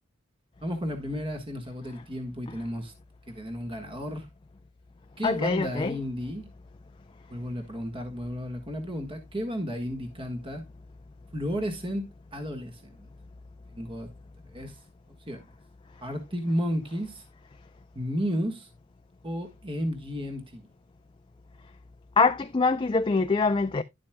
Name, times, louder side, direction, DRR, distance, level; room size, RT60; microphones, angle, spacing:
voice 1, 0.6-2.9 3.3-4.3 5.2-6.5 7.3-10.6 11.3-12.0 12.3-13.1 13.7-14.1 14.5-14.8 15.3-15.4 16.0-17.2 17.9-18.7 19.2-20.7, equal, 25° right, 1.5 m, -33 dB
voice 2, 5.2-6.0 22.2-23.8, left 4 dB, 25° left, 0.4 m, -24 dB
11.0 x 8.3 x 2.2 m
head